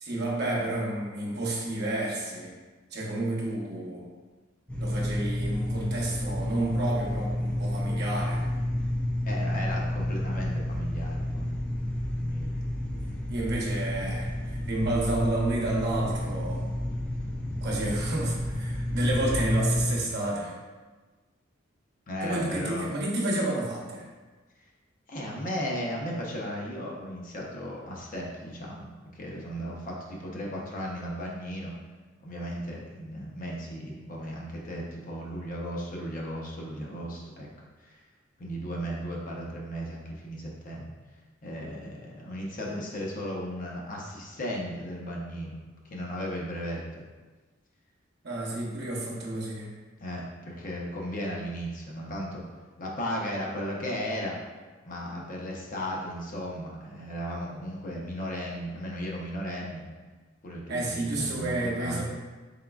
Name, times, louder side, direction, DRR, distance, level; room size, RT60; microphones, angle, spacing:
voice 1, 0.0-2.5 2.9-4.1 4.8-8.4 12.9-13.0 13.3-16.7 17.6-20.5 22.2-24.1 48.2-49.7 60.7-62.0, right 1 dB, 60° right, -3 dB, 0.8 m, -30 dB
sound 1, 4.7-19.9, left 1 dB, 5° left, 0.5 m, -30 dB
voice 2, 9.2-11.5 12.2-12.5 22.1-22.9 25.1-31.7 32.2-37.5 37.8-38.0 38.4-40.9 41.4-45.6 45.9-47.0 50.0-52.5 52.8-54.4 54.8-59.9 60.4-62.0, equal, 45° left, -3 dB, 0.7 m, -35 dB
4.2 x 3.6 x 2.3 m, 1.3 s
head